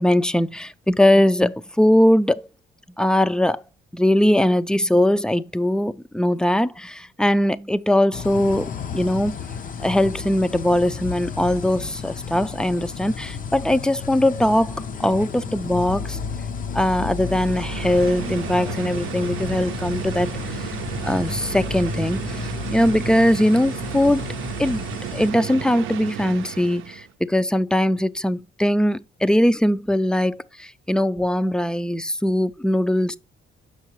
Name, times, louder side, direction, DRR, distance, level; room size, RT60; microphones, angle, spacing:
voice 1, 0.0-2.5 3.0-3.6 3.9-9.4 9.8-14.7 15.0-16.2 16.7-20.7 21.0-24.2 24.6-24.8 25.1-33.2, left 1 dB, 5° left, 0.4 m, -20 dB
sound 1, 8.1-25.3, left 6 dB, 45° left, 0.6 m, -33 dB
sound 2, 8.3-27.0, left 3 dB, 75° left, 2.6 m, -43 dB
sound 3, 17.1-27.1, right 12 dB, 90° right, 0.5 m, -33 dB
7.1 x 5.7 x 3.0 m
cardioid pair, 90°, 20 cm